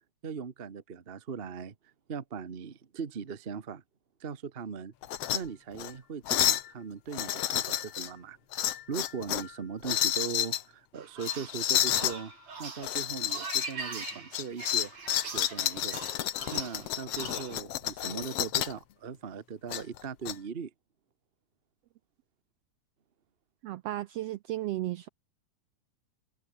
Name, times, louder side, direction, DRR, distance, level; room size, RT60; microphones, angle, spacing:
voice 1, 0.2-1.7 2.1-3.8 4.2-4.9 5.3-8.4 8.9-12.3 12.6-14.9 15.3-16.0 16.5-20.7, right 6 dB, 45° right, 0.7 m, -39 dB
sound 1, 5.0-5.4 5.7-5.9 6.3-6.7 7.1-8.1 8.5-9.5 9.8-10.6 11.2-12.2 12.8-13.7 14.0-18.8 19.7-20.3, left 12 dB, 65° left, 2.0 m, -30 dB
sound 2, 11.0-17.6, right 4 dB, 65° right, 6.3 m, -42 dB
voice 2, 23.6-25.1, right 15 dB, 80° right, 1.4 m, -34 dB
omnidirectional pair, 3.5 m